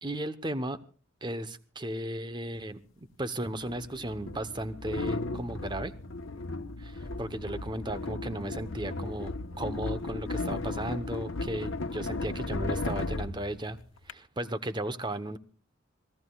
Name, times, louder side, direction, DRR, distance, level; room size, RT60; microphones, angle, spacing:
voice 1, 0.0-0.8 1.2-5.9 6.8-13.8 14.1-15.4, right 1 dB, 20° right, 0.9 m, -35 dB
sound 1, 2.5-2.6 3.5-14.1, left 2 dB, 75° left, 1.1 m, -35 dB
27.0 x 17.5 x 2.3 m
head